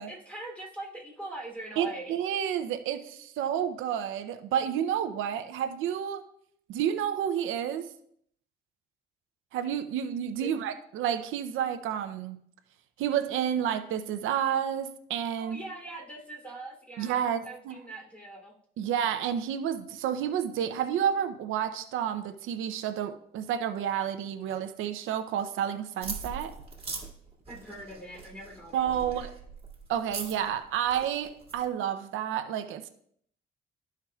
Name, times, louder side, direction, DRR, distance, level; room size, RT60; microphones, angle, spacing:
voice 1, 0.1-2.2 10.4-10.5 15.4-18.5 27.5-29.3, right 2 dB, 5° left, -2 dB, 3.0 m, -42 dB
voice 2, 1.8-6.2 6.7-7.9 9.5-12.4 13.0-15.6 17.0-17.8 18.8-26.5 28.7-29.3 29.9-32.9, right 9 dB, 85° right, 9 dB, 0.6 m, -30 dB
sound 1, 26.0-31.7, right 4 dB, 30° right, 2.1 m, -41 dB
13.0 x 4.7 x 2.3 m, 0.66 s
cardioid pair, 90°, 20 cm